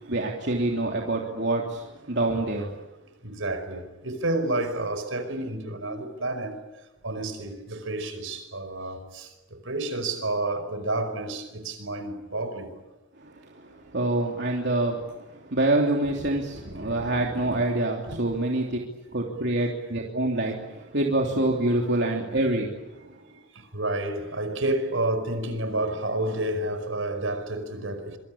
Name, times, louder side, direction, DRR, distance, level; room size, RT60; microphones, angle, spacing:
voice 1, 0.1-2.7 13.9-15.0 15.5-18.8 19.1-22.7, right 2 dB, 55° right, 3.2 m, -26 dB
voice 2, 3.2-6.6 7.0-12.8 16.0-17.6 18.1-18.2 19.4-19.5 21.8-22.0 23.3-28.2, right 2 dB, 75° right, 5.2 m, -30 dB
26.0 x 24.5 x 8.8 m
head